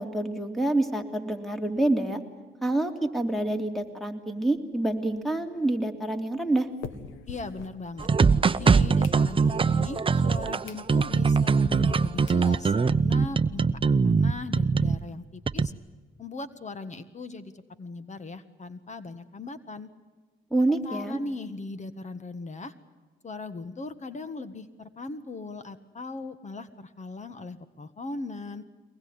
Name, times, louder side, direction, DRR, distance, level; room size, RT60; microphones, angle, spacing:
voice 1, 0.0-2.2 2.6-6.7 20.5-21.2, right 2 dB, ahead, 6 dB, 3.0 m, -27 dB
sound 1, 4.4-8.4 8.8-9.7 10.2-10.3 10.6-10.9 11.3-11.4 12.0-12.1 12.3-12.5 12.9-13.0 13.2-13.3 13.6-13.7 14.0-15.1, left 6 dB, 85° left, 1.9 m, -47 dB
voice 2, 7.3-8.1 8.6-15.7 16.2-19.9 20.6-22.7 23.2-28.6, left 3 dB, 35° left, 12 dB, 1.6 m, -39 dB
sound 2, 8.0-15.0 15.5-15.7, right 5 dB, 25° right, 0.8 m, -22 dB
23.5 x 20.0 x 9.8 m, 1.3 s
cardioid pair, 90°, 20 cm